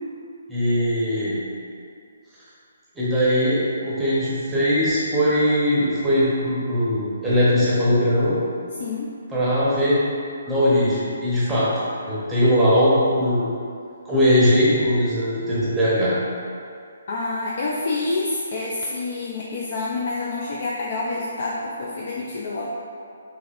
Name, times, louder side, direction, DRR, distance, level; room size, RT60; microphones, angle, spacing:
voice 1, 0.5-1.4 3.0-8.4 9.3-10.0 10.5-11.7 12.1-13.4 14.0-16.1, equal, 5° right, -10 dB, 0.8 m, -20 dB
voice 2, 8.8-9.1 17.1-22.7, left 3 dB, 50° left, -4 dB, 0.4 m, -27 dB
4.1 x 2.8 x 2.4 m, 2.4 s
hypercardioid pair, 160°, 0 cm